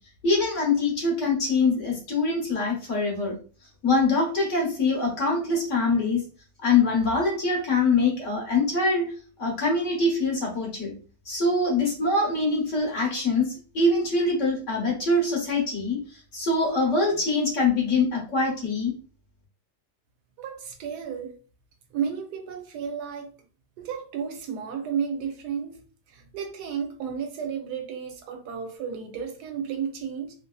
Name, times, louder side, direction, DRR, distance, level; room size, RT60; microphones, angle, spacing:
voice 1, 0.2-3.4 3.8-6.2 6.6-10.9 11.3-16.0 16.3-18.9, left 3 dB, 55° left, 1.1 m, -24 dB
voice 2, 20.4-21.4 21.9-23.3 23.8-25.8 26.1-30.3, right 7 dB, 75° right, 1.1 m, -32 dB
2.9 x 2.6 x 2.2 m
omnidirectional pair, 1.8 m